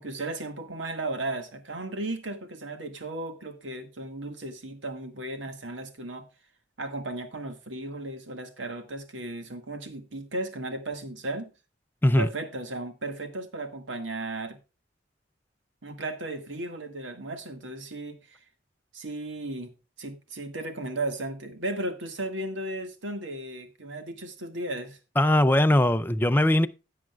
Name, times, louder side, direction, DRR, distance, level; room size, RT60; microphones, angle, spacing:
voice 1, 0.0-6.2 6.8-11.5 12.2-14.6 15.8-18.4 18.9-19.7 20.0-25.0, right 2 dB, 70° right, 1.8 m, -35 dB
voice 2, 25.2-26.7, left 1 dB, 10° left, 0.4 m, -20 dB
16.5 x 7.6 x 2.3 m
head